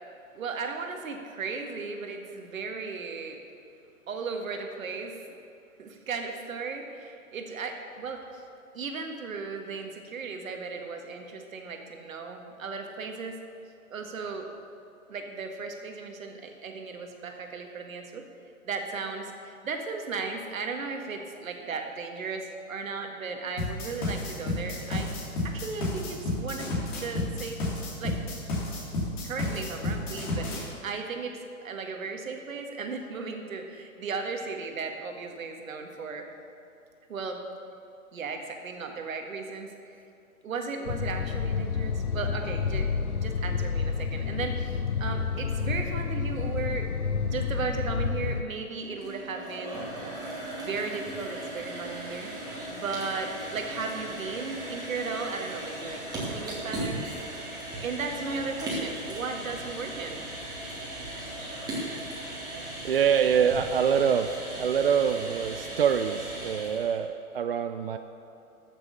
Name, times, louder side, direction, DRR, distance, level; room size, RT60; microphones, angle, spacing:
voice 1, 0.3-3.4 4.1-5.2 5.8-8.4 8.7-13.4 13.9-14.5 15.1-18.2 18.6-26.7 27.0-28.2 29.2-36.3 37.1-37.4 38.1-40.0 40.4-42.9 43.2-46.9 47.2-49.8 50.5-52.3 52.7-57.0 57.8-60.2, right 4 dB, 65° right, 4 dB, 1.8 m, -36 dB
sound 1, 23.6-30.6, left 2 dB, 35° left, 3.1 m, -31 dB
sound 2, 40.8-48.4, left 5 dB, 85° left, 0.9 m, -29 dB
sound 3, 48.7-67.0, right 1 dB, 10° right, 2.2 m, -37 dB
voice 2, 62.6-64.3 64.6-68.0, right 7 dB, 45° right, 8 dB, 0.4 m, -25 dB
13.0 x 6.8 x 7.0 m, 2.7 s
hypercardioid pair, 145°, 43 cm